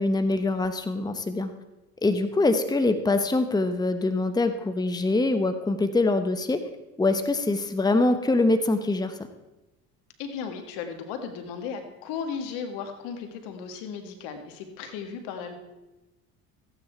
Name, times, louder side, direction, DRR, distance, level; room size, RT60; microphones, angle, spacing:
voice 1, 0.0-1.5 2.0-6.6 7.0-9.2, left 2 dB, 10° left, 9 dB, 1.0 m, -24 dB
voice 2, 10.2-15.5, left 6 dB, 75° left, 6 dB, 1.8 m, -35 dB
14.5 x 8.8 x 4.5 m, 1.0 s
supercardioid pair, 75°, 42 cm